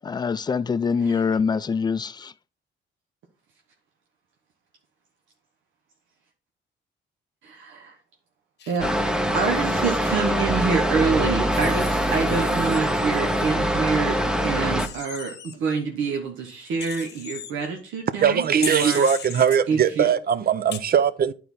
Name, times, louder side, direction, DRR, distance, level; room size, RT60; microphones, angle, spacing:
voice 1, 0.0-2.3, left 5 dB, 20° left, 0.4 m, -24 dB
voice 2, 7.4-7.9 8.7-8.9 9.3-14.2 14.4-19.0 19.7-20.1, right 5 dB, 85° right, 1.1 m, -26 dB
Wild animals, 8.6-10.1 11.5-13.6 14.8-15.5 16.8-17.5 18.6-19.6 20.7-20.8, left 8 dB, 60° left, 1.0 m, -37 dB
sound 1, 8.8-14.9, equal, 5° right, 0.8 m, -23 dB
voice 3, 18.2-21.3, right 8 dB, 50° right, 0.6 m, -20 dB
9.3 x 4.4 x 4.1 m
cardioid pair, 90°, 20 cm